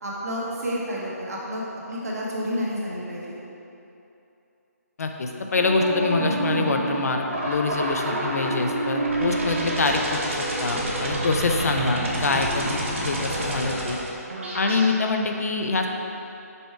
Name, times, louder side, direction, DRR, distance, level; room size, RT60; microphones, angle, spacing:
voice 1, 0.0-1.6 1.9-3.4, equal, 65° right, -5 dB, 1.1 m, -30 dB
voice 2, 5.0-14.0 14.5-15.9, left 3 dB, 65° left, 3 dB, 0.4 m, -25 dB
sound 1, 5.5-14.9, right 2 dB, 45° right, 0.7 m, -28 dB
5.3 x 2.2 x 4.3 m, 2.8 s
hypercardioid pair, 175°, 9 cm